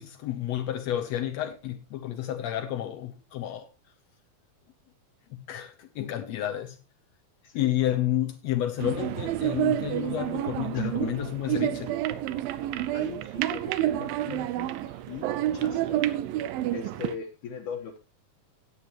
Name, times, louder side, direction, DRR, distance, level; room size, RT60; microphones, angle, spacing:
voice 1, 0.0-3.7 5.3-6.8 7.5-11.9, left 12 dB, 90° left, 1.5 m, -30 dB
sound 1, 8.8-17.1, right 13 dB, 80° right, 2.4 m, -29 dB
voice 2, 12.9-16.0 16.7-18.0, left 6 dB, 65° left, 2.3 m, -40 dB
17.5 x 8.4 x 3.0 m
omnidirectional pair, 4.3 m